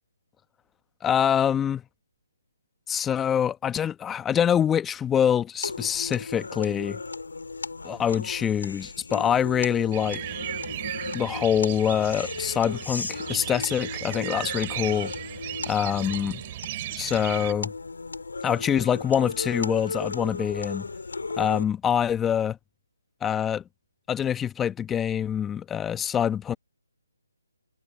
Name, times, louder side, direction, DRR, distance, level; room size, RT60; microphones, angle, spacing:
voice 1, 1.0-1.8 2.9-7.0 7.8-10.2 11.1-15.1 15.7-16.4 17.0-17.7 18.4-20.8 21.4-22.6 23.2-23.6 24.1-26.5, left 9 dB, 10° left, 1.1 m, -25 dB
sound 1, 5.6-21.6, left 4 dB, 75° left, 3.0 m, -36 dB
sound 2, 9.9-17.5, right 15 dB, 30° right, 5.2 m, -36 dB
figure-of-eight pair, 150°, 0 cm